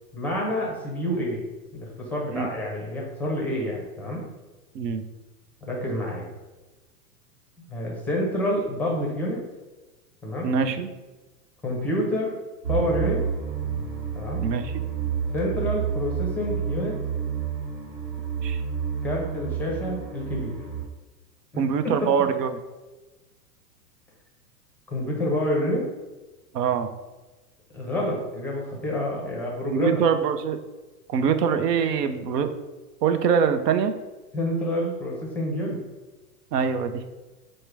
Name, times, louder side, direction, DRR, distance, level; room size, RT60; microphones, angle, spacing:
voice 1, 0.1-1.4 1.7-4.2 5.6-6.2 7.7-9.4 10.2-10.7 11.6-12.3 12.7-13.2 14.1-14.5 15.3-17.0 19.0-20.5 21.5-21.6 22.0-22.1 24.9-25.8 27.7-30.0 34.3-35.8, left 1 dB, 5° left, -3 dB, 0.5 m, -28 dB
voice 2, 10.4-10.9 14.4-14.8 18.4-18.6 21.6-22.5 26.5-26.9 29.7-30.6 31.1-32.5 33.0-34.0 36.5-37.0, right 7 dB, 85° right, 9 dB, 0.6 m, -23 dB
sound 1, 12.6-20.8, right 7 dB, 70° right, 1.4 m, -29 dB
4.7 x 2.1 x 4.6 m, 1.2 s
hypercardioid pair, 135°, 47 cm